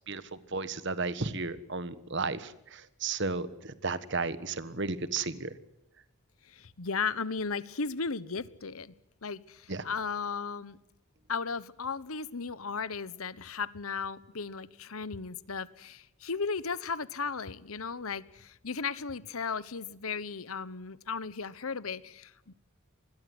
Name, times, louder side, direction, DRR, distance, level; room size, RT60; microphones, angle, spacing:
voice 1, 0.1-5.5 9.7-9.8, right 3 dB, 55° right, 14 dB, 1.5 m, -34 dB
voice 2, 6.5-8.9 9.2-10.8 11.3-22.5, left 5 dB, 80° left, 18 dB, 1.1 m, -35 dB
25.5 x 21.0 x 8.0 m, 0.85 s
head